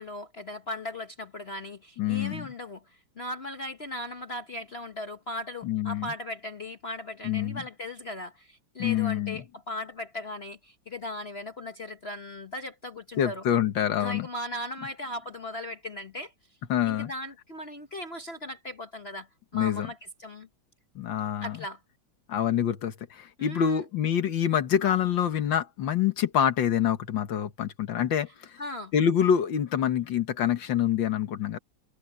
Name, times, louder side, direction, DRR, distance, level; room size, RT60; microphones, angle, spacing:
voice 1, 0.0-13.4 14.0-16.3 16.8-20.5 21.4-21.8 23.4-23.8 28.6-28.9, left 1 dB, 35° left, 1.2 m, -38 dB
voice 2, 2.0-2.5 5.6-6.1 7.2-7.6 8.8-9.4 13.2-14.3 16.7-17.1 19.5-19.9 21.0-21.6 22.3-28.5 28.9-31.6, left 9 dB, 75° left, 2.0 m, -26 dB
omnidirectional pair, 2.1 m